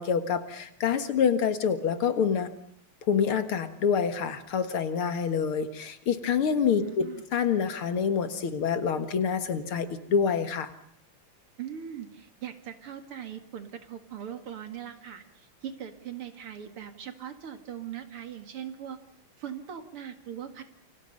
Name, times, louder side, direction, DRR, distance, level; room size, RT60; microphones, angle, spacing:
voice 1, 0.0-2.5 3.1-10.7, left 7 dB, 75° left, 10 dB, 2.6 m, -27 dB
voice 2, 6.7-7.2 11.6-19.0 19.4-20.6, right 9 dB, 80° right, 8 dB, 2.9 m, -40 dB
28.5 x 24.5 x 5.4 m, 0.66 s
omnidirectional pair, 2.4 m